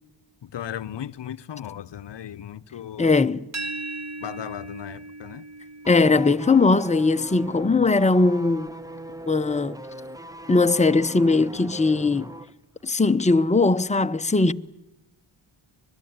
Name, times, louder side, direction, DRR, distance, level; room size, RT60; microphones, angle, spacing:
voice 1, 0.4-3.2 4.2-5.4, left 10 dB, 60° left, 0.8 m, -36 dB
voice 2, 3.0-3.5 5.9-8.7 9.3-9.8 10.5-12.3 12.8-14.5, left 3 dB, 15° left, 0.9 m, -20 dB
sound 1, 3.5-9.3, right 2 dB, 35° right, 1.8 m, -39 dB
sound 2, 5.8-12.5 12.8-12.9, right 1 dB, 5° right, 1.1 m, -40 dB
25.0 x 21.0 x 9.5 m
cardioid pair, 60°, 48 cm